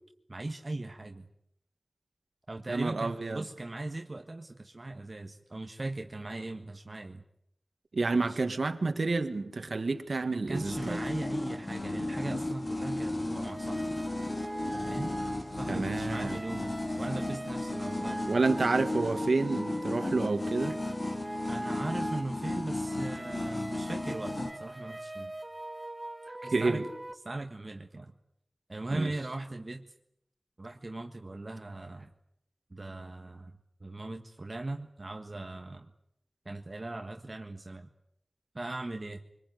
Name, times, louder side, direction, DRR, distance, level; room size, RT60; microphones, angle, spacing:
voice 1, 0.3-1.3 2.5-7.2 8.2-8.4 10.3-14.0 14.6-15.1 15.5-18.4 21.5-25.3 26.4-26.9 27.2-28.1 28.7-29.9 30.6-32.1 32.7-33.5 33.8-35.9 36.4-37.9 38.5-39.2, right 2 dB, 45° right, 5 dB, 1.6 m, -39 dB
voice 2, 2.7-3.5 7.9-11.0 15.7-16.4 18.3-20.8 26.3-26.8 28.9-29.1, right 3 dB, 70° right, 8 dB, 2.0 m, -29 dB
sound 1, 10.5-24.5, left 2 dB, 45° left, 3.6 m, -35 dB
sound 2, 13.4-27.1, right 1 dB, 20° right, 1.7 m, -42 dB
25.0 x 20.5 x 9.4 m, 0.77 s
wide cardioid pair, 60°, 0 cm